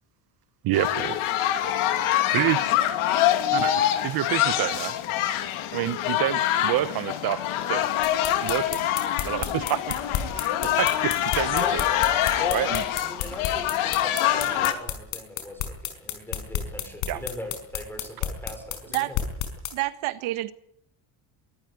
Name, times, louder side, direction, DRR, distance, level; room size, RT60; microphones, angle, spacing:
voice 1, 0.6-1.2 2.3-2.8 3.5-4.9 5.7-7.9 8.4-8.9 9.3-9.9 10.3-11.8 12.5-12.8 17.1-17.2, right 13 dB, 50° right, 0.9 m, -28 dB
sound 1, 0.7-14.7, left 12 dB, 85° left, 2.7 m, -25 dB
sound 2, 8.0-19.7, left 11 dB, 65° left, 5.3 m, -31 dB
voice 2, 12.3-12.7 13.0-19.2, equal, 5° left, 5.5 m, -40 dB
voice 3, 19.7-20.5, right 17 dB, 80° right, 1.8 m, -28 dB
23.5 x 14.5 x 9.4 m
cardioid pair, 175°, 48 cm